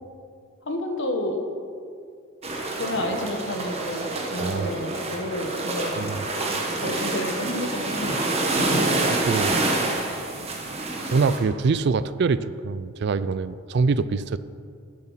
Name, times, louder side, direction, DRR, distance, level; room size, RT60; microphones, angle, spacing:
voice 1, 0.6-1.4 2.7-6.1 6.8-9.0, left 1 dB, 55° left, 4 dB, 1.3 m, -31 dB
sound 1, 2.4-11.4, right 2 dB, 30° right, 1.4 m, -27 dB
voice 2, 11.1-14.4, right 4 dB, 50° right, 15 dB, 0.3 m, -24 dB
12.0 x 7.8 x 5.7 m, 2.2 s
head